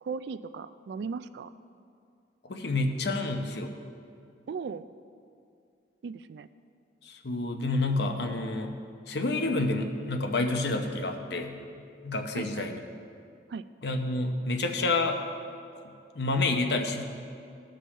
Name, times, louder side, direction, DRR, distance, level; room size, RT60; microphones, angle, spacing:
voice 1, 0.0-1.5 4.5-4.9 6.0-6.5 12.3-12.7 13.5-13.7, right 5 dB, 70° right, 13 dB, 0.3 m, -37 dB
voice 2, 2.5-3.7 7.0-8.8 9.1-11.6 12.0-12.8 13.8-15.2 16.1-17.0, left 2 dB, 65° left, 4 dB, 0.8 m, -29 dB
16.0 x 5.4 x 4.2 m, 2.4 s
head